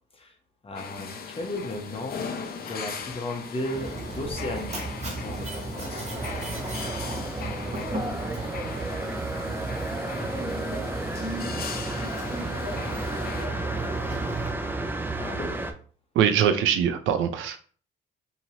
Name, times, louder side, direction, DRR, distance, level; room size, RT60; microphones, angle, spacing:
voice 1, 0.6-2.2 2.7-6.1 15.2-15.5, left 1 dB, 30° left, 2 dB, 0.8 m, -35 dB
sound 1, 0.7-13.5, left 6 dB, 50° left, 0.5 m, -39 dB
Mechanisms, 3.7-14.5, right 2 dB, 35° right, 1.0 m, -34 dB
sound 2, 6.1-15.7, right 2 dB, 10° right, 0.3 m, -33 dB
voice 2, 16.2-17.6, right 8 dB, 85° right, 7 dB, 0.5 m, -22 dB
2.9 x 2.8 x 2.7 m, 0.43 s
cardioid pair, 90°, 20 cm